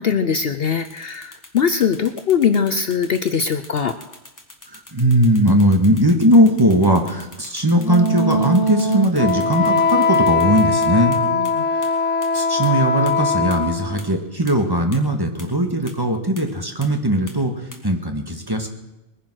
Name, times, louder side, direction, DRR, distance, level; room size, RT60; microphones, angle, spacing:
voice 1, 0.0-3.9 11.3-11.6, left 7 dB, 55° left, 10 dB, 0.9 m, -21 dB
sound 1, 0.8-11.2 11.4-11.5 11.8-11.9 12.2-12.3 12.6-12.7 13.1-13.2 13.5-13.6 14.0-14.1 14.5-14.6 14.9-15.0 15.4-15.5 15.9-16.0 16.4-16.5 16.8-16.9 17.3-17.4 17.7-17.8, left 1 dB, 15° left, 2.1 m, -42 dB
voice 2, 4.7-11.2 12.3-17.5 17.8-18.7, equal, 20° right, 4 dB, 1.7 m, -18 dB
Wind instrument woodwind instrument, 7.8-14.0, left 3 dB, 75° left, 1.5 m, -20 dB
21.0 x 10.5 x 6.3 m, 0.99 s
omnidirectional pair, 1.3 m